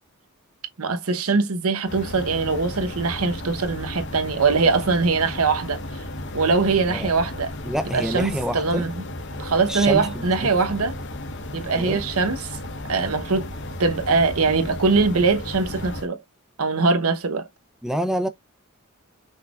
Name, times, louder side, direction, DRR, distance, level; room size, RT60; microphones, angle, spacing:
voice 1, 0.8-5.8 6.3-7.5 7.9-8.9 9.4-11.0 11.5-12.6 12.9-13.5 13.8-16.2 16.6-17.4, right 4 dB, 90° right, 0.9 m, -22 dB
sound 1, 1.8-16.1, left 1 dB, 55° left, 0.9 m, -34 dB
voice 2, 7.6-8.8 9.7-10.5 11.7-12.0 17.8-18.3, equal, ahead, 0.5 m, -27 dB
5.6 x 3.6 x 2.4 m
head